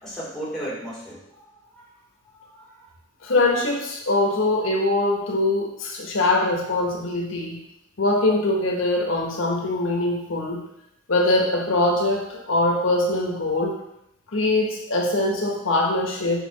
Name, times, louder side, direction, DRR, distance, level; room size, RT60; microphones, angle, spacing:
voice 1, 0.0-1.5 1.7-1.9 2.4-2.8, right 1 dB, ahead, -9 dB, 2.2 m, -35 dB
voice 2, 3.2-7.6 8.0-10.6 11.1-13.8 14.3-16.4, left 2 dB, 85° left, 0 dB, 1.2 m, -22 dB
5.8 x 5.2 x 4.1 m, 0.82 s
head